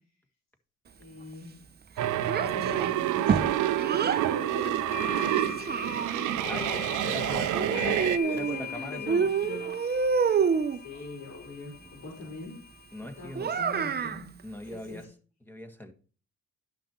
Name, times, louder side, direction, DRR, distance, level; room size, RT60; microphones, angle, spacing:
voice 1, 1.0-1.6 2.0-3.5 4.0-9.6 10.8-12.6 13.2-14.3 14.7-15.1, left 3 dB, 65° left, -1 dB, 4.4 m, -42 dB
sound 1, 2.0-8.2, right 13 dB, 80° right, 0.7 m, -28 dB
Child speech kid speaking, 2.3-4.3 5.2-6.4 7.5-8.7 9.1-10.8 13.3-14.2, right 6 dB, 35° right, 0.7 m, -28 dB
sound 2, 4.7-13.5, left 8 dB, 35° left, 0.8 m, -41 dB
voice 2, 6.4-7.5 8.3-9.3 11.8-11.9 12.9-13.5 14.4-15.1 15.4-15.9, left 1 dB, 5° left, 6 dB, 1.5 m, -41 dB
12.0 x 5.7 x 4.5 m, 0.38 s
cardioid pair, 90°, 30 cm